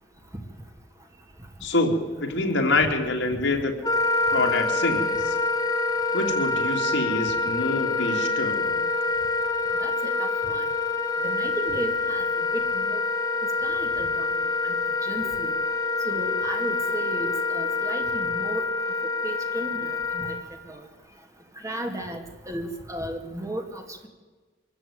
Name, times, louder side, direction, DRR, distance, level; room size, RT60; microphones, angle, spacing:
voice 1, 1.6-1.9 2.2-3.7 4.3-5.3 6.1-8.8, left 2 dB, 65° left, 2 dB, 3.1 m, -26 dB
Wind instrument woodwind instrument, 3.8-20.4, left 3 dB, 20° left, 1.6 m, -26 dB
voice 2, 9.8-10.6 11.2-12.3 12.5-13.0 13.6-14.3 14.6-14.7 15.0-15.5 16.1-18.6 19.2-20.3 20.7-20.8 21.6-24.1, right 1 dB, 15° right, 4 dB, 2.3 m, -35 dB
24.5 x 14.0 x 9.5 m, 1.3 s
head